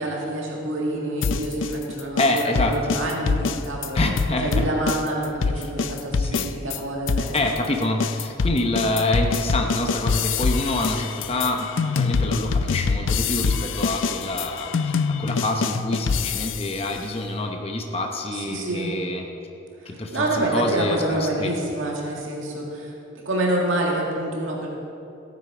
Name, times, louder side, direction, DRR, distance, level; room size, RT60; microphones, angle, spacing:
voice 1, 0.0-4.0 4.4-7.4 18.3-18.9 19.8-24.7, right 1 dB, 85° right, -2 dB, 2.0 m, -27 dB
sound 1, 1.2-6.8 7.1-16.8, left 5 dB, 75° left, 0.5 m, -25 dB
voice 2, 2.2-2.8 3.9-4.7 5.5-5.7 6.1-6.5 7.3-19.3 19.9-21.5, left 2 dB, 30° left, 3 dB, 0.8 m, -26 dB
15.0 x 9.3 x 4.9 m, 2.8 s
head